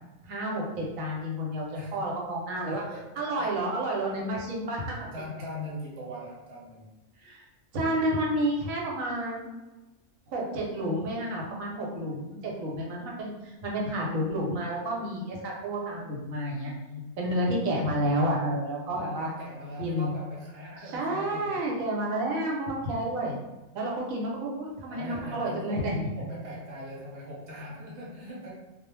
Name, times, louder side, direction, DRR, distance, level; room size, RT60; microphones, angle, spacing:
voice 1, 0.2-2.8 3.2-5.1 7.2-7.4 7.7-9.5 10.3-16.7 17.2-19.3 19.8-20.1 20.9-23.4 23.7-26.1, right 1 dB, 85° right, -2 dB, 1.1 m, -30 dB
voice 2, 1.7-2.1 2.7-3.7 5.1-6.9 16.4-17.1 18.9-21.7 24.9-28.5, left 1 dB, 65° right, -4 dB, 0.9 m, -41 dB
2.3 x 2.0 x 3.1 m, 1.1 s
omnidirectional pair, 1.4 m